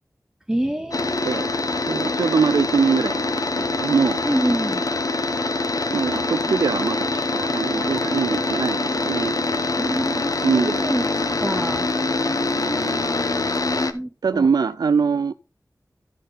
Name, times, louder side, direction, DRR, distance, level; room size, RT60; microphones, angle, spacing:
voice 1, 0.5-1.3 4.2-4.8 9.8-11.8 12.6-13.3 13.9-14.5, right 1 dB, 10° right, 1.1 m, -27 dB
sound 1, 0.9-13.9, left 3 dB, 65° left, 1.0 m, -24 dB
voice 2, 1.2-1.5 1.9-4.2 5.9-9.4 10.4-10.8 14.2-15.3, right 5 dB, 90° right, 0.4 m, -23 dB
13.0 x 4.4 x 5.0 m
wide cardioid pair, 60°, 7 cm